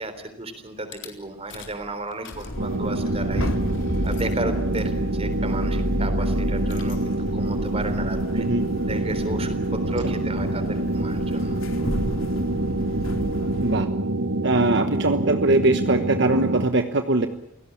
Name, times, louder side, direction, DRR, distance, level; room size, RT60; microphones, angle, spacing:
voice 1, 0.0-3.5 4.0-8.5 8.9-11.6, right 2 dB, 30° right, 10 dB, 3.8 m, -33 dB
Rattle / Car / Engine starting, 0.9-1.1 1.5-1.8 2.1-9.9, equal, 65° left, 3.9 m, -32 dB
sound 1, 2.3-13.8, left 1 dB, 85° left, 3.2 m, -34 dB
sound 2, 2.6-16.7, right 2 dB, 85° right, 1.4 m, -26 dB
voice 2, 8.3-8.7 10.0-10.1 13.6-13.9 14.4-17.3, right 2 dB, 60° right, 7 dB, 1.2 m, -21 dB
28.5 x 17.5 x 8.7 m, 0.83 s
head